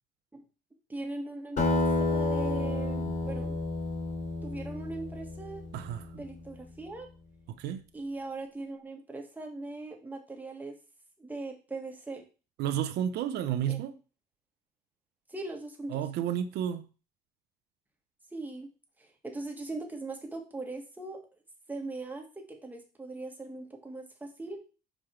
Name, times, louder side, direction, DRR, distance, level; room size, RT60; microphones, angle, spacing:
voice 1, 0.9-3.5 4.4-5.6 6.1-7.1 7.9-10.8 11.2-12.2 13.7-13.8 15.3-16.0 18.3-18.7 19.0-21.2 21.7-24.6, right 2 dB, 10° right, 1.7 m, -40 dB
Acoustic guitar, 1.6-6.4, left 2 dB, 45° left, 3.2 m, -31 dB
voice 2, 5.7-6.1 7.6-7.8 12.6-13.9 15.9-16.9, right 10 dB, 75° right, 0.7 m, -31 dB
5.4 x 5.1 x 4.6 m
cardioid pair, 110°, 17 cm